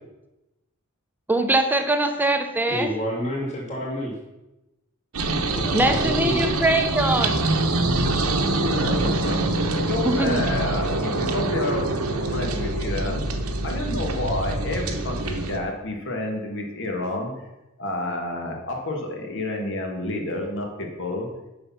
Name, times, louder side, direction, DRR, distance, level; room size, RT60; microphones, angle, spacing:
voice 1, 1.3-2.9 5.7-7.5 10.0-10.5, right 2 dB, 10° right, 6 dB, 0.6 m, -22 dB
voice 2, 2.7-4.1 5.5-6.5 9.8-9.9, equal, 30° left, -4 dB, 2.1 m, -29 dB
sound 1, 5.1-15.6, right 2 dB, 75° right, 0.9 m, -25 dB
voice 3, 8.5-9.4 9.7-13.2 13.6-17.3 17.8-21.3, left 1 dB, 60° left, 2 dB, 1.6 m, -29 dB
6.8 x 5.6 x 5.7 m, 1.0 s
head